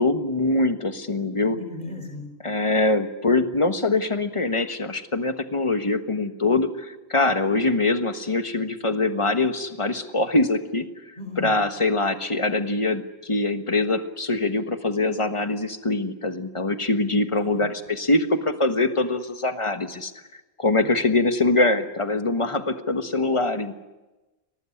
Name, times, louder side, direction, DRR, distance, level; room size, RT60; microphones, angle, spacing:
voice 1, 0.0-1.6 2.4-10.8 11.4-20.1 20.6-23.8, left 2 dB, 30° left, 8 dB, 1.4 m, -23 dB
voice 2, 1.5-2.3 11.2-11.5 17.4-17.6, left 2 dB, 45° left, 4 dB, 4.4 m, -36 dB
23.0 x 18.5 x 10.0 m, 1.1 s
omnidirectional pair, 1.1 m